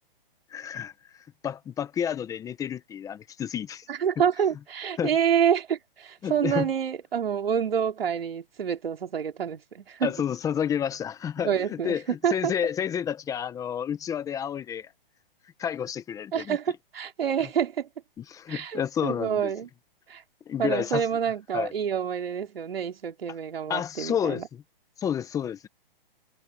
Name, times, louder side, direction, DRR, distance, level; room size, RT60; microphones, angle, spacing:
voice 1, 0.5-0.9 1.4-3.9 5.0-5.2 6.2-6.7 10.0-14.9 15.6-16.6 18.2-19.5 20.5-21.0 21.5-21.7 23.7-24.6 25.0-25.7, left 8 dB, 10° left, 1.1 m, -30 dB
voice 2, 3.9-10.1 11.4-12.5 16.3-17.9 18.5-19.7 20.1-20.2 20.6-24.5, right 8 dB, 80° right, 3.8 m, -27 dB
hypercardioid pair, 150°, 29 cm